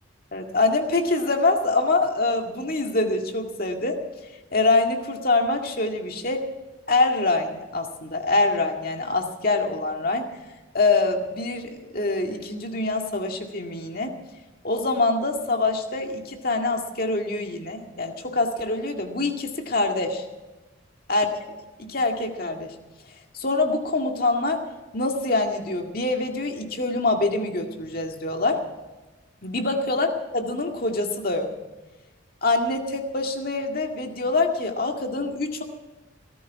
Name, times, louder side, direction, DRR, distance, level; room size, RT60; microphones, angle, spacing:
voice 1, 0.3-4.0 4.5-6.5 6.9-10.3 10.7-14.1 14.6-20.2 21.1-21.3 21.8-22.7 23.3-24.6 24.9-28.6 29.4-31.5 32.4-35.6, left 3 dB, 45° left, 3 dB, 2.1 m, -25 dB
18.0 x 14.5 x 4.7 m, 1.1 s
head